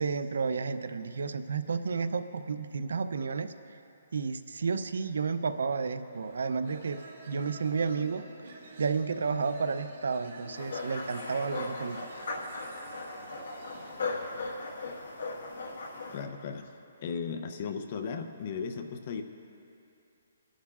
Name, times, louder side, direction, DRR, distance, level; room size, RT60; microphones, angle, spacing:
voice 1, 0.0-3.5 4.1-7.0 7.3-8.2 8.8-12.0, right 5 dB, 80° right, 11 dB, 0.5 m, -31 dB
sound 1, 6.1-14.0, right 2 dB, 50° right, 2.2 m, -49 dB
sound 2, 10.5-16.2, left 3 dB, 70° left, 1.5 m, -38 dB
voice 2, 16.1-16.6 17.0-19.2, left 5 dB, 35° left, 7 dB, 0.5 m, -36 dB
23.5 x 11.0 x 2.4 m, 2.7 s
hypercardioid pair, 170°, 0 cm